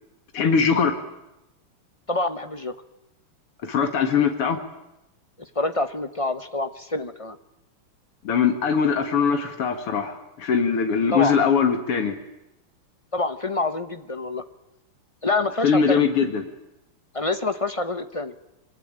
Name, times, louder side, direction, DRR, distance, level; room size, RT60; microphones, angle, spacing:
voice 1, 0.3-1.0 3.6-4.6 8.2-12.2 15.6-16.4, left 6 dB, 90° left, 6 dB, 2.9 m, -21 dB
voice 2, 2.1-2.7 5.4-7.4 11.1-11.4 13.1-14.4 15.2-16.1 17.1-18.3, left 2 dB, 30° left, 10 dB, 0.5 m, -26 dB
26.5 x 23.0 x 9.0 m, 0.92 s
omnidirectional pair, 2.4 m